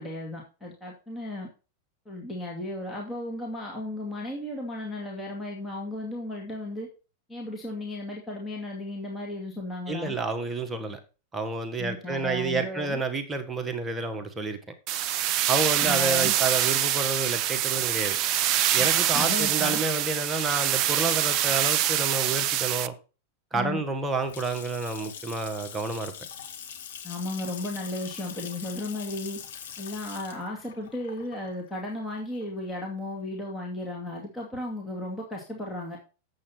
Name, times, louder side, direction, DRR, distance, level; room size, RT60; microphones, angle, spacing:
voice 1, 0.0-1.5 2.1-6.9 7.3-10.2 11.8-13.0 15.8-16.3 19.1-19.8 23.5-23.8 27.0-29.4 29.8-36.0, left 2 dB, 10° left, 2.4 m, -35 dB
voice 2, 9.9-11.0 11.3-14.6 15.5-18.2 18.7-22.9 23.5-26.1, right 3 dB, 15° right, 1.5 m, -29 dB
sound 1, 14.9-22.9, right 12 dB, 40° right, 0.5 m, -25 dB
Water tap faucet / Sink (filling or washing) / Splash splatter, 23.9-32.7, left 8 dB, 60° left, 2.0 m, -43 dB
8.5 x 7.6 x 4.4 m
figure-of-eight pair, 90°, 0 cm